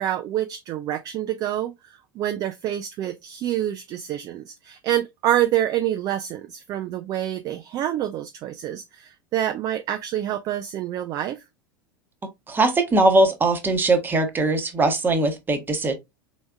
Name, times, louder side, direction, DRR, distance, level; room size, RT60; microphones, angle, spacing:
voice 1, 0.0-11.4, right 12 dB, 35° right, 0.4 m, -27 dB
voice 2, 12.5-15.9, right 2 dB, 15° right, 1.0 m, -20 dB
4.0 x 3.4 x 2.2 m
figure-of-eight pair, 80°, 12 cm